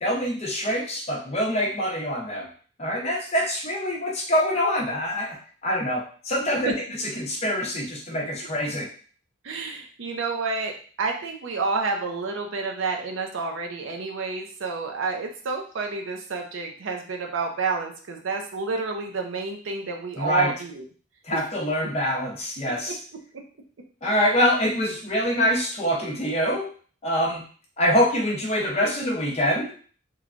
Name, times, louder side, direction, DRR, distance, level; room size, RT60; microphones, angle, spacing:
voice 1, 0.0-2.5 2.8-5.4 5.6-8.9 20.2-20.5 21.2-23.0 24.0-26.7 27.0-27.4 27.8-29.7, equal, 30° left, -2 dB, 0.6 m, -25 dB
voice 2, 9.4-10.7 11.0-20.8 21.3-21.4 24.0-24.2, right 4 dB, 70° right, 2 dB, 0.5 m, -29 dB
3.1 x 2.2 x 2.4 m, 0.42 s
head